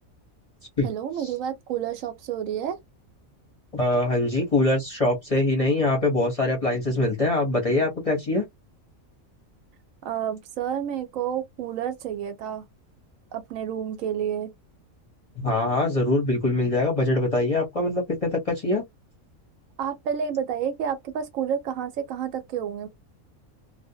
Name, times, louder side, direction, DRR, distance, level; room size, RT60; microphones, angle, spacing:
voice 1, 0.8-2.8 10.0-12.6 13.3-14.5 19.8-22.9, right 8 dB, 75° right, 1.0 m, -30 dB
voice 2, 3.7-8.4 15.4-18.8, left 2 dB, 35° left, 0.7 m, -23 dB
2.4 x 2.0 x 2.7 m
omnidirectional pair, 1.4 m